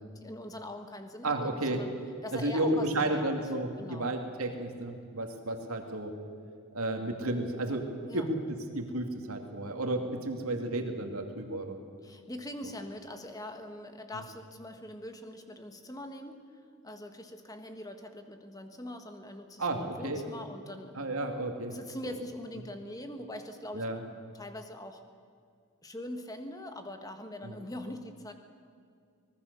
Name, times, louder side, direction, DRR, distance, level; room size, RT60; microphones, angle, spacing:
voice 1, 0.0-1.9 2.2-3.4 3.8-4.1 8.1-8.3 12.0-21.1 21.7-23.9 24.3-25.0 25.8-28.3, left 1 dB, 15° left, 6 dB, 1.5 m, -43 dB
voice 2, 1.2-1.8 2.3-6.1 6.7-8.4 8.7-11.8 14.1-14.2 19.6-20.2 21.0-21.7 23.7-24.0 27.4-27.5, right 2 dB, 75° right, 4 dB, 2.7 m, -32 dB
24.5 x 19.5 x 7.0 m, 2.3 s
head